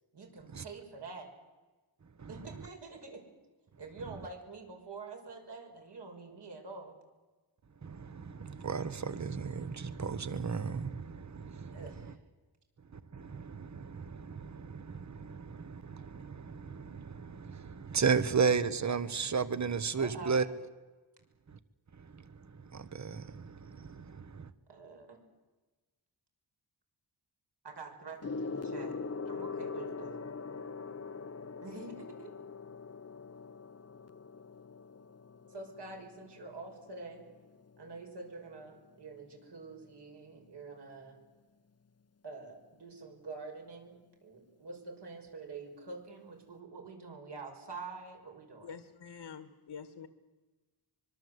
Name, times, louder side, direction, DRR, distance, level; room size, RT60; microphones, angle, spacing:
voice 1, 0.1-1.3 2.3-3.2 3.8-6.9 11.7-12.2 20.0-20.5 24.7-25.2 27.6-29.0 29.3-30.2 31.6-32.3 35.5-37.2 37.8-41.2 42.2-48.8, right 3 dB, 65° right, 6.1 m, -46 dB
voice 2, 7.8-11.8 13.1-20.4 22.1-22.2 22.7-24.5, right 5 dB, 40° right, 1.3 m, -34 dB
Gong, 28.2-38.0 38.9-39.2, left 4 dB, 35° left, 0.8 m, -42 dB
voice 3, 48.6-50.1, left 6 dB, 80° left, 1.8 m, -46 dB
25.0 x 23.0 x 8.1 m
wide cardioid pair, 115°, 43 cm